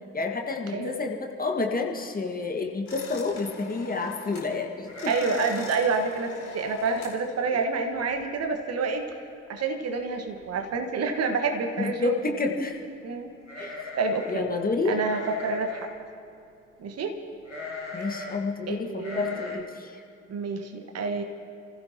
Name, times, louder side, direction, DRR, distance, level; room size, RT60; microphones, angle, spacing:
voice 1, 0.1-5.4 11.8-12.8 13.6-13.7 14.3-15.0 17.9-20.0, left 3 dB, 25° left, 2 dB, 1.8 m, -29 dB
sound 1, 2.9-4.5 4.8-7.2, left 4 dB, 65° left, 2.8 m, -43 dB
sound 2, 4.9-5.8 6.1-6.2 6.7-6.9 7.5-7.6 7.9-8.4 8.7-8.8 9.9-10.0 10.3-10.8 13.4-14.4 15.0-16.0 17.5-18.4 19.0-19.6, left 3 dB, 90° left, 1.3 m, -38 dB
voice 2, 5.1-9.1 9.5-12.3 13.0-13.3 13.6-14.5 14.8-15.9 16.8-17.2 18.7-19.6 20.3-21.2, right 4 dB, 45° right, 5 dB, 1.6 m, -28 dB
29.5 x 15.5 x 3.0 m, 2.6 s
figure-of-eight pair, 45°, 35 cm